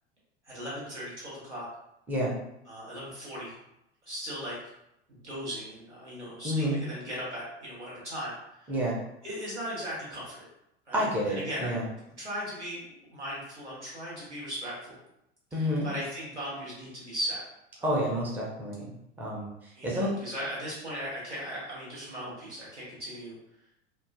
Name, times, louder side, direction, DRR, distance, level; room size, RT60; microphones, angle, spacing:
voice 1, 0.4-1.7 2.7-3.6 4.1-4.6 5.1-8.7 9.2-10.4 10.9-11.7 12.2-14.9 15.5-17.4 17.8-18.0 19.7-23.4, equal, 85° right, -8 dB, 1.3 m, -38 dB
voice 2, 2.1-2.4 6.4-6.8 8.7-9.0 10.9-11.9 15.5-15.9 17.8-20.1, equal, 5° right, -4 dB, 0.5 m, -29 dB
3.0 x 2.1 x 2.4 m, 0.83 s
figure-of-eight pair, 85°, 34 cm